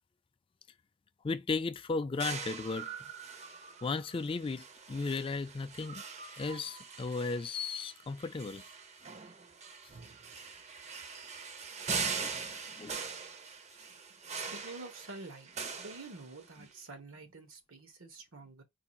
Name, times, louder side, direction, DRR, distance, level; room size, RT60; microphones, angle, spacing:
voice 1, 1.2-2.9 3.8-6.0 6.4-8.6 12.2-12.3 12.8-13.0, left 4 dB, 25° left, 0.3 m, -35 dB
sound 1, 2.2-16.7, right 5 dB, 35° right, 0.5 m, -42 dB
voice 2, 14.3-15.5 15.8-18.6, right 3 dB, 90° right, 1.2 m, -48 dB
4.7 x 2.4 x 4.2 m
head